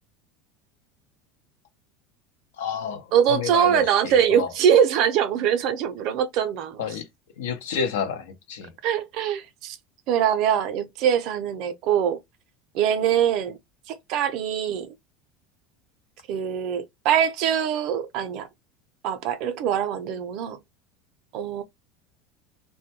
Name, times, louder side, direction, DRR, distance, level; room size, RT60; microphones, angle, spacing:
voice 1, 2.6-4.5 6.8-7.1 7.4-8.7, left 7 dB, 90° left, 0.6 m, -30 dB
voice 2, 3.1-7.0 8.8-9.8 10.1-12.2 12.7-13.6 13.9-14.9 16.3-18.5 19.0-20.6 21.3-21.6, right 9 dB, 60° right, 0.5 m, -23 dB
2.2 x 2.1 x 2.8 m
supercardioid pair, 110°, 0 cm